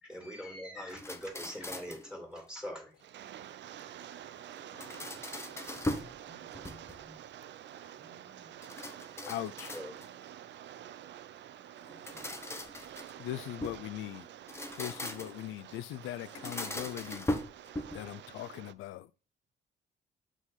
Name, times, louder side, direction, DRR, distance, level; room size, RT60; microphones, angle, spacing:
voice 1, 0.0-3.0 9.2-9.3 9.7-9.9, equal, 5° right, 2.6 m, -43 dB
sound 1, 0.9-2.1 4.5-6.2 6.5-7.1 8.6-10.2 11.8-13.9 14.4-15.5 16.3-18.1, left 1 dB, 15° left, 0.9 m, -39 dB
Rain, 3.0-18.7, right 11 dB, 65° right, 0.5 m, -49 dB
voice 2, 3.8-5.1 7.8-8.0 9.3-9.7 13.2-14.3 14.7-17.3 17.9-19.1, left 14 dB, 85° left, 0.5 m, -41 dB
voice 3, 6.3-7.2 8.0-8.5 11.9-12.2, right 1 dB, 35° right, 1.0 m, -59 dB
6.1 x 3.9 x 5.6 m
cardioid pair, 90°, 20 cm